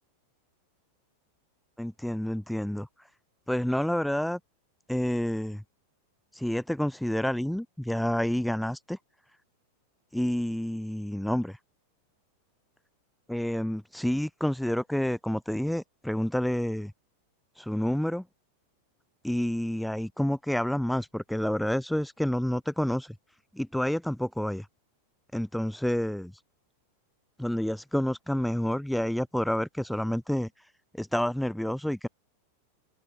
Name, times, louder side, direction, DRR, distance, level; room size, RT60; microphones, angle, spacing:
voice 1, 1.8-2.9 3.5-4.4 4.9-5.6 6.4-9.0 10.1-11.6 13.3-16.9 17.6-18.2 19.2-23.2 23.5-24.7 25.3-26.3 27.4-30.5 30.9-32.1, equal, ahead, 0.6 m, -29 dB
figure-of-eight pair, 90°, 0 cm